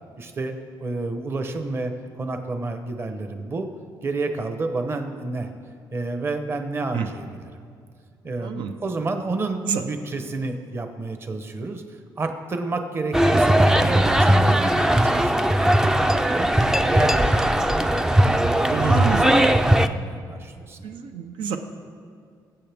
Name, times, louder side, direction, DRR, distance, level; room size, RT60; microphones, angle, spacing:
voice 1, 0.2-0.5 0.8-1.9 2.2-3.7 4.0-5.5 5.9-7.5 8.2-11.8 12.2-16.5 16.8-17.9 18.2-20.8, right 3 dB, 30° right, 6 dB, 0.9 m, -30 dB
sound 1, 13.1-19.9, right 1 dB, 5° right, 0.4 m, -18 dB
voice 2, 18.8-19.2 20.3-20.4 20.8-21.6, right 7 dB, 85° right, 6 dB, 0.8 m, -27 dB
22.5 x 7.9 x 3.5 m, 2.2 s
cardioid pair, 135°, 8 cm